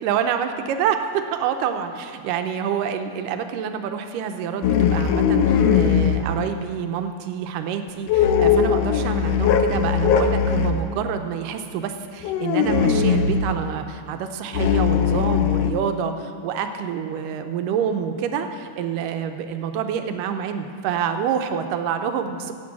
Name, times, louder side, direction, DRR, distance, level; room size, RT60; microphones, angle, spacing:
voice 1, 0.0-22.5, right 8 dB, 90° right, 7 dB, 2.3 m, -27 dB
sound 1, 4.6-6.3 8.1-10.8 12.2-13.5 14.5-15.7, left 7 dB, 85° left, 1.4 m, -19 dB
11.0 x 8.8 x 7.3 m, 2.2 s
omnidirectional pair, 3.8 m